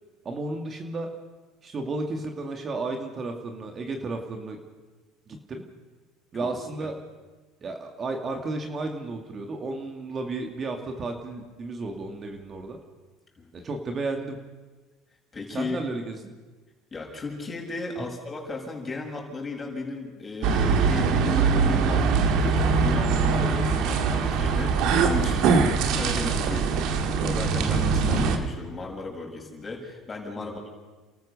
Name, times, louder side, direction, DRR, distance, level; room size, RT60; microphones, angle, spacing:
voice 1, 0.2-1.1 1.6-4.6 5.3-5.6 6.3-6.9 7.6-12.8 13.5-14.4 15.5-16.3 30.4-30.6, right 3 dB, 35° right, 3 dB, 2.6 m, -33 dB
voice 2, 6.3-6.9 13.4-13.5 15.3-15.8 16.9-30.7, left 3 dB, 25° left, 0 dB, 7.0 m, -35 dB
sound 1, 20.4-28.4, right 5 dB, 65° right, 2.4 m, -22 dB
30.0 x 14.0 x 6.9 m, 1.3 s
supercardioid pair, 90°, 0 cm